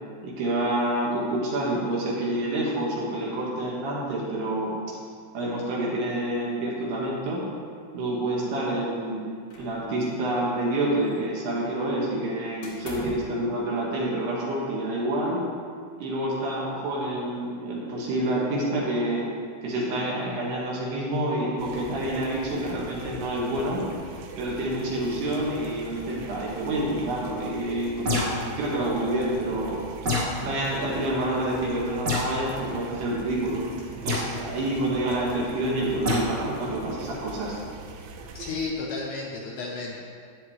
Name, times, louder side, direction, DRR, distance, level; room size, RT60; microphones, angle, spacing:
voice 1, 0.2-4.8 5.3-7.5 7.9-9.3 9.6-15.4 16.0-19.3 19.6-23.8 24.4-29.8 30.4-33.6 33.9-37.6, right 1 dB, 65° right, -5 dB, 3.4 m, -28 dB
sound 1, 9.5-10.3 10.5-11.5 12.6-13.4, equal, 60° left, 2.0 m, -43 dB
sound 2, 21.6-38.7, right 3 dB, 90° right, 3.2 m, -42 dB
sound 3, 28.0-28.5 30.0-30.4 32.1-32.4 34.1-34.3 36.0-36.3, left 2 dB, 45° right, 2.0 m, -26 dB
voice 2, 38.3-40.0, left 3 dB, 75° left, -3 dB, 2.8 m, -32 dB
13.5 x 9.6 x 3.2 m, 2.2 s
omnidirectional pair, 5.6 m